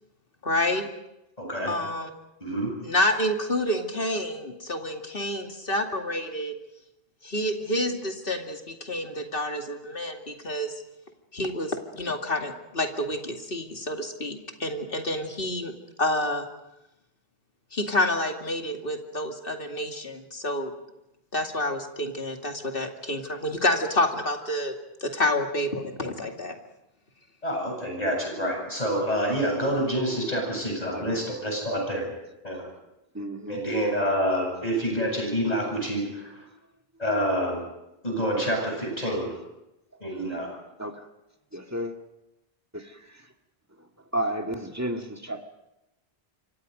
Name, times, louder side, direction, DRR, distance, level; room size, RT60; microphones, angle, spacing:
voice 1, 0.4-0.9 1.6-2.1 2.8-6.6 7.2-10.8 11.3-15.7 16.0-16.5 17.7-20.7 21.3-24.7 25.0-26.6, left 1 dB, 60° left, 3 dB, 2.6 m, -28 dB
voice 2, 1.4-1.7 2.4-2.7 27.4-32.1 32.4-32.7 33.5-36.4 37.0-37.6 38.0-39.4 40.0-40.5, equal, 40° left, 1 dB, 8.3 m, -27 dB
voice 3, 33.1-33.6 40.8-41.1 41.5-42.0 42.7-43.0 44.1-45.4, right 1 dB, 15° right, 4 dB, 1.8 m, -32 dB
27.5 x 25.0 x 5.3 m, 0.91 s
omnidirectional pair, 1.1 m